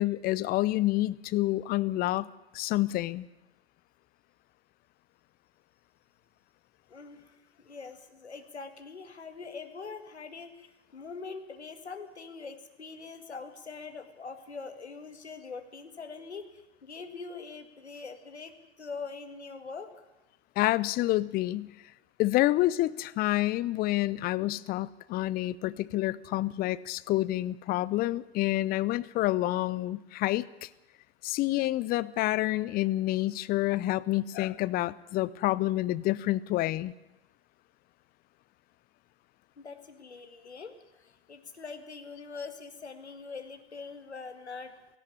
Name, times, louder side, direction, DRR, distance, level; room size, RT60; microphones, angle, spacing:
voice 1, 0.0-2.3 2.5-3.3 20.6-21.7 22.2-30.7 31.2-36.9, left 16 dB, 30° left, 20 dB, 0.6 m, -28 dB
voice 2, 6.9-20.1 39.6-44.7, left 4 dB, 80° left, 8 dB, 2.2 m, -43 dB
17.0 x 17.0 x 9.8 m, 1.0 s
figure-of-eight pair, 90°, 32 cm